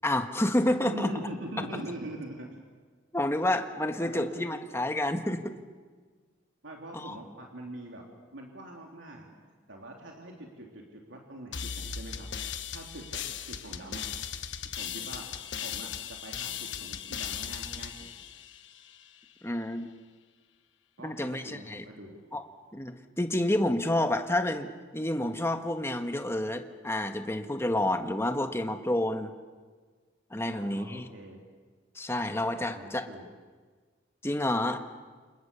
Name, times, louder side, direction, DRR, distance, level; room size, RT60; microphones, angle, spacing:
voice 1, 0.0-1.1 3.1-5.5 6.9-7.2 19.4-19.9 21.0-21.8 22.3-22.4 22.7-29.3 30.3-31.1 31.9-33.0 34.2-34.8, left 1 dB, 15° left, 6 dB, 1.5 m, -29 dB
voice 2, 0.8-2.6 4.0-4.3 6.6-8.0 8.3-14.0 14.8-15.3 15.6-18.1 21.0-22.2 30.5-31.4 32.6-33.3, right 1 dB, 85° right, 0 dB, 3.3 m, -43 dB
sound 1, 11.5-19.0, left 8 dB, 75° left, 1.4 m, -38 dB
29.5 x 27.5 x 7.0 m, 1.5 s
head